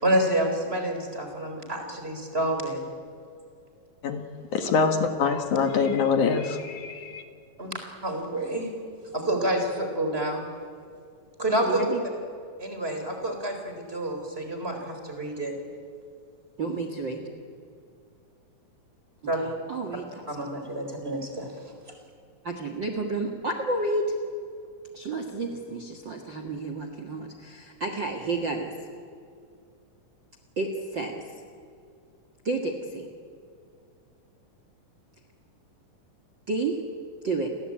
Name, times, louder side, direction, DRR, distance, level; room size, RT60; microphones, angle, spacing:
voice 1, 0.0-2.9 7.6-7.7 8.0-8.7 9.1-10.4 11.4-11.8 12.6-15.5 19.3-19.4 20.3-21.5, right 1 dB, 15° right, 4 dB, 4.1 m, -28 dB
voice 2, 4.5-7.2, left 5 dB, 65° left, 6 dB, 2.9 m, -24 dB
voice 3, 11.6-12.0 16.6-17.2 19.4-20.3 22.4-24.1 24.9-28.7 30.6-31.2 32.4-33.1 36.5-36.8 37.2-37.5, right 3 dB, 40° right, 5 dB, 2.0 m, -30 dB
30.0 x 21.5 x 8.8 m, 2.3 s
omnidirectional pair, 4.0 m